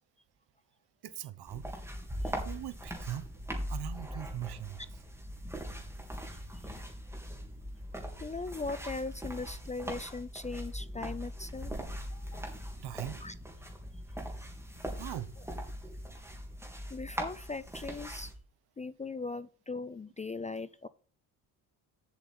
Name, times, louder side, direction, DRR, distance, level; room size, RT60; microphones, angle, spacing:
voice 1, 1.0-1.6 2.4-3.3 3.7-4.8 12.8-13.2 14.9-15.3, right 12 dB, 65° right, 1.1 m, -40 dB
sound 1, 1.5-18.3, equal, 5° right, 3.4 m, -41 dB
voice 2, 8.2-11.7 12.1-12.4 13.2-13.3 16.9-18.3 18.8-20.9, left 3 dB, 20° left, 0.4 m, -39 dB
7.8 x 6.8 x 5.4 m
cardioid pair, 90°, 42 cm